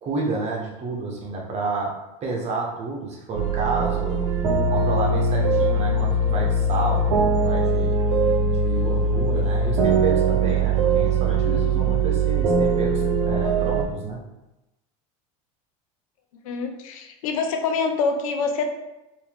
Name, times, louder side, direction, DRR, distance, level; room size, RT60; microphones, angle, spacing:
voice 1, 0.0-1.9 2.2-4.3 4.7-8.0 8.5-14.2, right 3 dB, 40° right, 0 dB, 1.2 m, -30 dB
sound 1, 3.3-13.8, right 3 dB, 85° right, 0.9 m, -21 dB
voice 2, 16.4-18.8, left 4 dB, 90° left, 5 dB, 0.7 m, -25 dB
4.5 x 2.9 x 3.6 m, 0.98 s
supercardioid pair, 110°, 17 cm